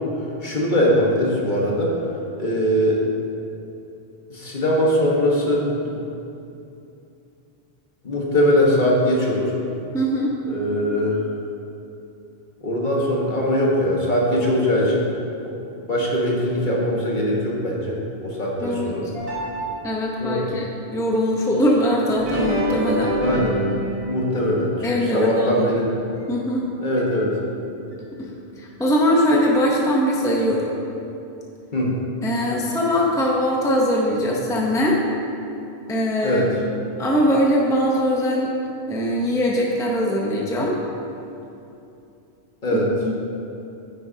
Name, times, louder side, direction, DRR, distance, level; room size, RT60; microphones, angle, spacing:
voice 1, 0.4-2.0 2.4-3.0 4.3-5.9 8.0-9.5 10.5-11.2 12.6-15.0 15.4-15.5 15.9-19.1 20.2-20.5 23.2-23.6 24.1-24.7 25.1-25.9 26.8-27.3 31.7-31.9 36.2-36.5 42.6-42.9, equal, 50° left, -3 dB, 1.5 m, -21 dB
voice 2, 9.9-10.4 18.6-18.9 19.8-20.7 20.9-23.2 24.8-25.7 26.3-26.7 28.2-30.7 32.2-35.0 35.9-36.5 37.0-38.5 38.9-40.8 42.7-43.2, equal, 5° left, -2 dB, 0.7 m, -21 dB
sound 1, 19.1-20.3 22.1-26.5 27.0-27.1 27.9-28.0 28.8-28.9, right 1 dB, 65° right, 1.9 m, -28 dB
9.7 x 8.8 x 2.8 m, 2.7 s
omnidirectional pair, 1.1 m